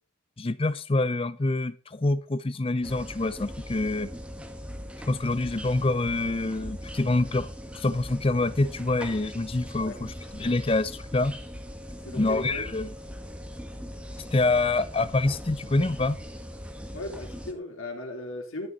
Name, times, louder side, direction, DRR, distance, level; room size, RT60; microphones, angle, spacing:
voice 1, 0.4-4.1 5.1-7.5 7.7-11.3 12.2-12.9 14.3-16.2, left 2 dB, 25° left, 0.5 m, -26 dB
sound 1, 2.8-17.5, equal, 5° right, 1.2 m, -40 dB
voice 2, 12.0-12.7 16.9-18.7, left 1 dB, 80° left, 3.4 m, -36 dB
13.5 x 9.1 x 4.0 m
head